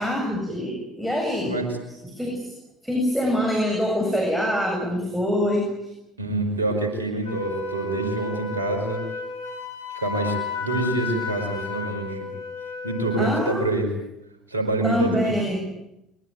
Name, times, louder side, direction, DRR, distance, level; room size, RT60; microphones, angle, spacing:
voice 1, 0.0-1.6 2.1-2.5 2.8-5.9 13.2-13.7 14.8-15.6, equal, ahead, 0 dB, 7.7 m, -24 dB
voice 2, 6.2-9.0 9.9-12.3 12.8-13.9 14.5-15.4, right 2 dB, 85° right, 5 dB, 4.9 m, -26 dB
Wind instrument woodwind instrument, 7.2-13.6, left 4 dB, 80° left, 5.1 m, -33 dB
23.0 x 21.5 x 9.3 m, 0.89 s
figure-of-eight pair, 60°, 0 cm